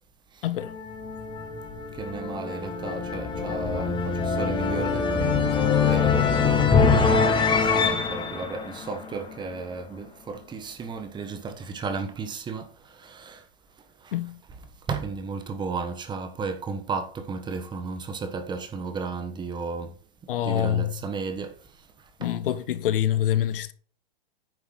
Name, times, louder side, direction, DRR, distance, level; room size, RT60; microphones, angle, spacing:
voice 1, 0.4-0.8 14.1-14.4 20.3-20.9 22.2-23.7, left 11 dB, 65° left, 1.0 m, -25 dB
sound 1, 0.6-9.6, left 5 dB, 15° left, 1.7 m, -24 dB
voice 2, 2.0-6.3 7.6-12.7 13.0-13.4 14.9-19.9 20.4-21.5, right 4 dB, 15° right, 1.3 m, -34 dB
10.0 x 7.0 x 3.9 m
hypercardioid pair, 135°, 30 cm